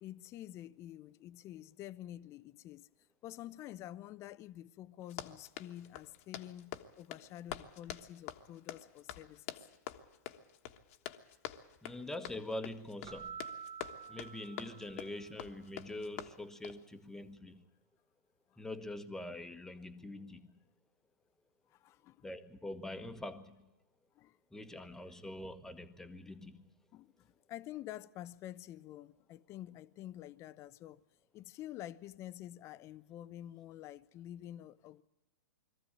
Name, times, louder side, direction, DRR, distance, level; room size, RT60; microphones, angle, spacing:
voice 1, 0.0-2.9 3.2-9.7 14.0-14.5 18.5-18.6 21.7-22.3 24.1-24.4 26.9-31.0 31.3-35.0, left 13 dB, 30° left, 0.7 m, -49 dB
Run, 5.0-16.8, left 12 dB, 50° left, 1.4 m, -47 dB
voice 2, 11.8-13.4 14.1-17.7 18.6-20.6 22.2-23.7 24.5-26.6, left 1 dB, 5° left, 1.3 m, -44 dB
Keyboard (musical), 13.1-15.5, right 7 dB, 40° right, 1.8 m, -48 dB
22.0 x 14.5 x 8.5 m
hypercardioid pair, 125°, 10 cm